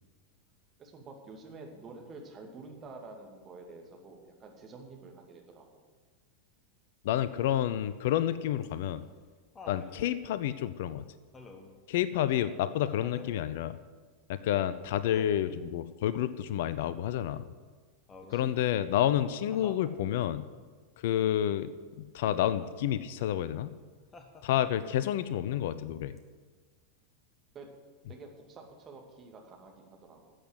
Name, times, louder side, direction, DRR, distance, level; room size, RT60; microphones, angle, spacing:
voice 1, 0.8-5.8 8.9-9.0 9.8-10.1 12.2-12.4 15.6-15.8 18.3-18.5 24.5-24.7 27.5-27.7 28.1-30.3, right 3 dB, 25° right, 1 dB, 2.4 m, -49 dB
voice 2, 7.0-9.0 9.7-11.0 11.9-13.8 14.3-17.4 18.3-20.4 21.0-21.7 22.0-23.7 24.4-26.1, left 11 dB, 55° left, 14 dB, 0.5 m, -29 dB
Laughter, 8.6-9.9 11.3-11.8 13.0-13.4 15.0-15.6 18.1-18.6 19.5-19.9 22.2-22.7 24.1-24.8 26.2-26.3, left 3 dB, 20° left, 1.6 m, -49 dB
12.5 x 8.0 x 7.9 m, 1.5 s
figure-of-eight pair, 90°, 0 cm